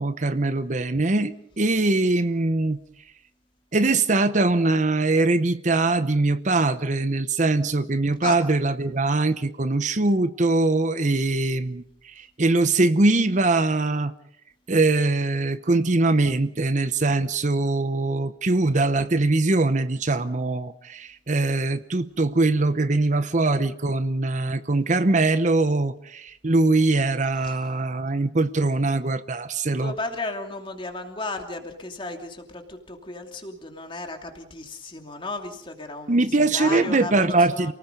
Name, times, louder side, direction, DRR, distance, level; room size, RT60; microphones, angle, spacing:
voice 1, 0.0-2.8 3.7-14.1 14.7-29.9 36.1-37.7, right 2 dB, 45° right, 12 dB, 0.8 m, -22 dB
voice 2, 29.8-37.7, left 2 dB, 30° left, 4 dB, 2.8 m, -34 dB
28.5 x 19.0 x 5.3 m, 0.67 s
head